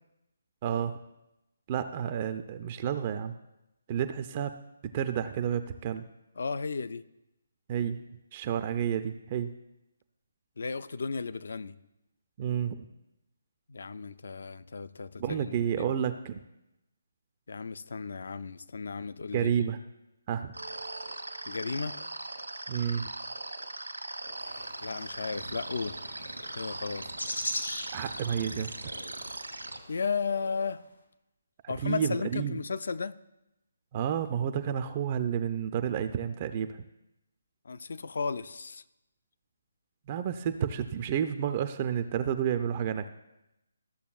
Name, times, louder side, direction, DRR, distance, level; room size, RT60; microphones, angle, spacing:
voice 1, 0.6-1.0 1.7-3.3 3.9-6.0 7.7-8.0 8.3-9.5 12.4-12.9 15.2-16.4 19.3-19.8 20.3-20.5 22.7-23.0 27.9-28.9 31.6-32.6 33.9-36.8 40.1-43.1, right 8 dB, 30° right, 9 dB, 0.4 m, -30 dB
voice 2, 6.4-7.0 10.6-11.8 13.7-15.9 17.5-19.5 21.5-22.0 24.8-26.0 26.6-27.1 29.9-30.8 31.7-33.1 37.7-38.8, left 5 dB, 60° left, 14 dB, 0.4 m, -34 dB
sound 1, 20.5-29.8, right 2 dB, 85° right, 1.1 m, -40 dB
sound 2, 24.4-30.6, left 1 dB, 85° left, 2.0 m, -41 dB
14.0 x 6.8 x 2.4 m, 0.92 s
figure-of-eight pair, 145°, 0 cm